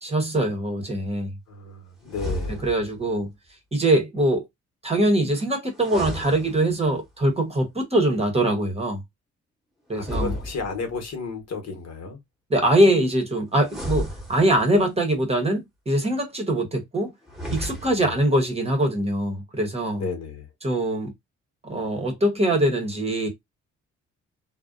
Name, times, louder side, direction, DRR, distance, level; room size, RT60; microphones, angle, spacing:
voice 1, 0.0-1.3 2.6-3.3 3.7-4.4 4.8-9.0 9.9-10.3 12.5-17.1 17.5-20.0 20.6-21.1 21.6-23.3, right 1 dB, 20° right, 0.9 m, -23 dB
voice 2, 1.5-2.6 9.9-12.2 17.7-18.1 19.9-20.5, left 4 dB, 60° left, 1.0 m, -33 dB
sound 1, 2.1-3.0 5.7-7.1 9.9-11.1 13.6-14.9 17.2-18.2, left 1 dB, ahead, 1.0 m, -33 dB
2.5 x 2.1 x 2.4 m
cardioid pair, 90°, 30 cm